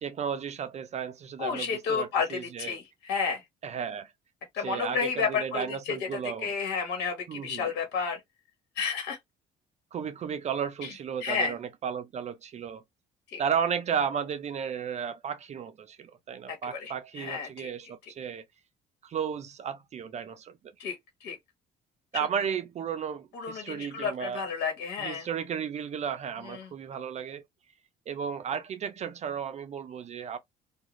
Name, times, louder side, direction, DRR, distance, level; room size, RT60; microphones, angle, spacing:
voice 1, 0.0-2.8 3.6-4.1 4.6-6.5 7.3-7.7 9.9-12.8 13.4-18.4 19.0-20.6 22.1-24.4 25.0-27.4 28.1-30.4, right 7 dB, 40° right, 0.4 m, -34 dB
voice 2, 1.4-3.4 4.5-8.2 8.8-9.2 10.8-10.9 11.2-11.5 13.3-13.4 16.5-17.7 20.8-21.0 21.2-21.4 23.3-25.3 26.4-26.7, left 5 dB, 85° left, 1.3 m, -31 dB
2.4 x 2.4 x 3.0 m
cardioid pair, 110°, 17 cm